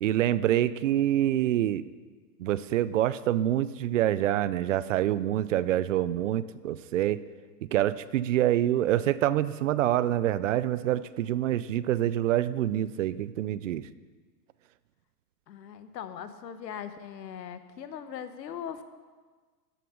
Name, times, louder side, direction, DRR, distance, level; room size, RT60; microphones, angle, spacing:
voice 1, 0.0-1.9 2.4-7.2 7.6-13.9, right 12 dB, 50° right, 17 dB, 0.5 m, -26 dB
voice 2, 15.5-18.8, left 8 dB, 90° left, 10 dB, 1.2 m, -40 dB
13.5 x 7.0 x 6.3 m, 1.4 s
hypercardioid pair, 155°, 49 cm